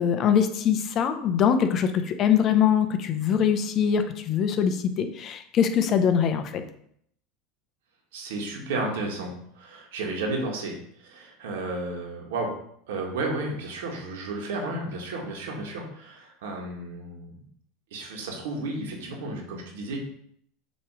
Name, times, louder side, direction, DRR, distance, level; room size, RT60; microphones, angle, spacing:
voice 1, 0.0-6.6, left 8 dB, 40° left, 8 dB, 0.7 m, -23 dB
voice 2, 8.1-12.6 12.9-17.5 17.9-20.0, right 2 dB, 90° right, 0 dB, 1.7 m, -33 dB
7.1 x 3.1 x 4.8 m, 0.67 s
supercardioid pair, 125°, 0 cm